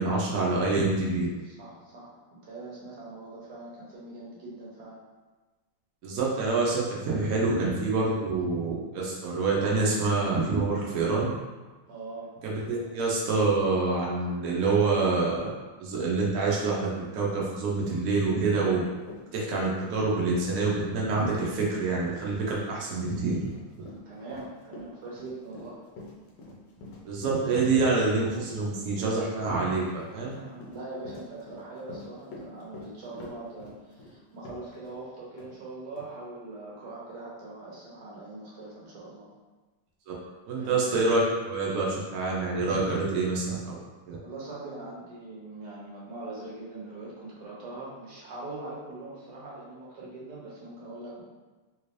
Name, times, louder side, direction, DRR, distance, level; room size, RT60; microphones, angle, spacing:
voice 1, 0.0-1.3 6.0-11.3 12.4-15.5 15.8-18.8 19.3-23.5 27.0-30.3 40.1-40.2 40.5-43.8 44.1-44.2, right 3 dB, 80° right, -4 dB, 0.7 m, -26 dB
voice 2, 1.4-5.0 11.9-12.3 12.6-12.9 24.0-25.8 30.1-39.3 40.6-40.9 44.2-51.2, right 2 dB, 55° right, -5 dB, 1.3 m, -42 dB
Run, 18.6-18.7 19.0-35.0 35.4-35.5 36.0-36.1, left 2 dB, 65° left, 1.2 m, -47 dB
3.5 x 3.1 x 2.5 m, 1.3 s
omnidirectional pair, 2.4 m